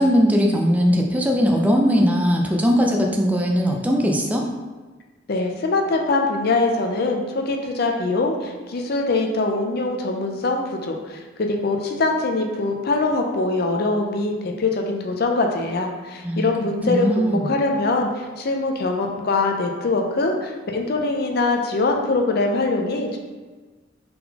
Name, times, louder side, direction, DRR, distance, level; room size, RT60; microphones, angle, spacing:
voice 1, 0.0-4.5 16.2-16.5 16.9-17.5, equal, 10° right, 1 dB, 0.4 m, -19 dB
voice 2, 5.3-23.2, left 3 dB, 50° left, 2 dB, 0.5 m, -23 dB
3.9 x 3.7 x 2.8 m, 1.3 s
head